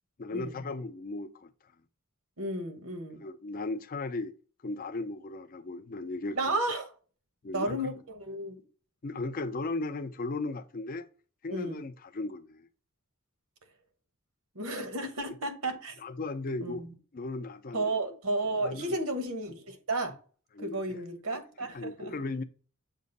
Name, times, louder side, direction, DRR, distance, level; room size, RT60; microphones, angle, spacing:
voice 1, 0.2-1.5 3.2-4.3 4.6-6.5 7.4-7.9 9.0-11.1 11.4-12.7 16.0-16.8 17.1-17.8 18.6-18.9 20.5-20.8 21.7-22.4, left 2 dB, 40° left, 0.5 m, -36 dB
voice 2, 2.4-3.2 6.4-6.9 7.5-8.6 11.5-11.8 14.5-16.0 16.6-16.9 17.7-20.2 20.6-22.1, right 2 dB, 90° right, 1.2 m, -33 dB
7.3 x 2.5 x 5.3 m
head